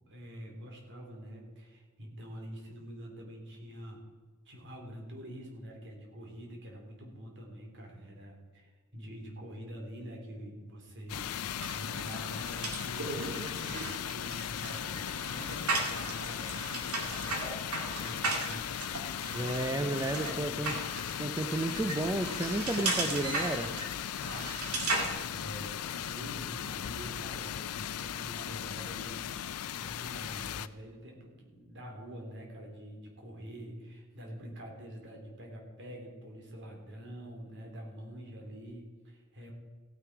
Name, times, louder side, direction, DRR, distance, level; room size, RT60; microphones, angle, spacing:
voice 1, 0.0-4.0 4.4-13.8 14.1-18.9 19.2-20.7 21.2-21.3 24.2-39.5, equal, 55° right, 1 dB, 3.0 m, -46 dB
sound 1, 11.1-30.7, left 9 dB, 85° left, 0.5 m, -37 dB
sound 2, 11.6-25.1, right 3 dB, 80° right, 2.2 m, -37 dB
voice 2, 19.3-20.7 21.2-23.7, right 1 dB, 15° right, 7 dB, 0.5 m, -32 dB
15.5 x 9.6 x 4.6 m, 1.5 s
head